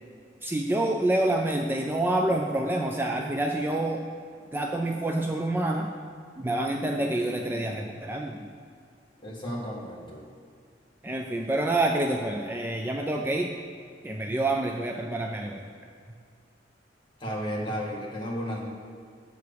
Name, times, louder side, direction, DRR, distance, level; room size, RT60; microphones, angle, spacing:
voice 1, 0.4-4.0 4.5-5.9 6.4-8.4 11.0-13.5 14.0-15.6, right 1 dB, 10° right, 1 dB, 0.4 m, -27 dB
voice 2, 9.2-10.2 17.2-18.7, equal, 25° left, -3 dB, 1.6 m, -33 dB
8.3 x 4.7 x 6.8 m, 2.2 s
head